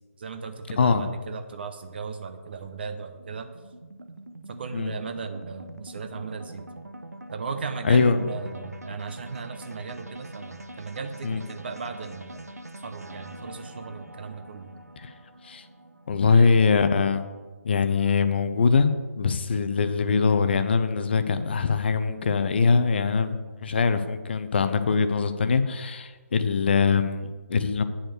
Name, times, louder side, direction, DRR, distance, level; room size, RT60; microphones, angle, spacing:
voice 1, 0.2-3.5 4.5-6.7 7.3-12.4 12.8-14.7 16.3-16.5, right 5 dB, 40° right, 8 dB, 0.7 m, -36 dB
voice 2, 0.7-1.1 4.7-4.9 7.8-8.2 11.2-11.4 15.0-15.1 15.4-15.6 16.1-17.2 17.6-27.8, left 5 dB, 40° left, 10 dB, 0.6 m, -22 dB
sound 1, 2.4-18.1, right 1 dB, 80° right, 0.8 m, -44 dB
8.8 x 4.8 x 7.0 m, 1.3 s
figure-of-eight pair, 145°, 8 cm